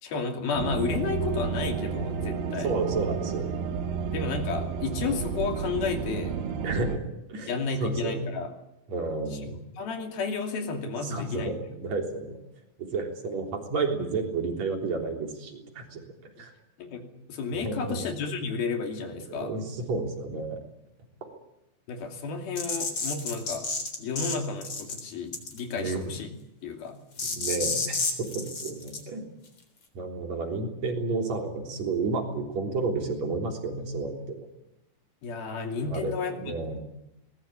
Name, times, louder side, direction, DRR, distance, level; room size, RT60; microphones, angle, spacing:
voice 1, 0.0-2.7 4.1-6.4 7.5-8.5 9.5-11.6 16.8-19.5 21.9-23.7 24.0-26.3 26.6-27.0 35.2-36.5, left 5 dB, 85° left, 4 dB, 4.6 m, -32 dB
sound 1, 0.5-7.0, right 6 dB, 75° right, 3.3 m, -31 dB
voice 2, 2.6-3.5 6.6-7.0 7.3-7.5 7.8-8.3 8.9-9.6 11.0-12.4 12.8-16.0 16.4-16.5 17.6-18.0 19.1-20.6 25.8-26.2 27.3-29.2 29.9-34.5 35.9-36.1 36.4-36.8, right 3 dB, 50° right, 2 dB, 4.6 m, -31 dB
sound 2, 22.5-24.3 24.6-25.0 25.3-25.7 27.2-29.0, left 4 dB, 40° left, 4.5 m, -30 dB
22.5 x 20.0 x 8.7 m, 0.90 s
omnidirectional pair, 4.2 m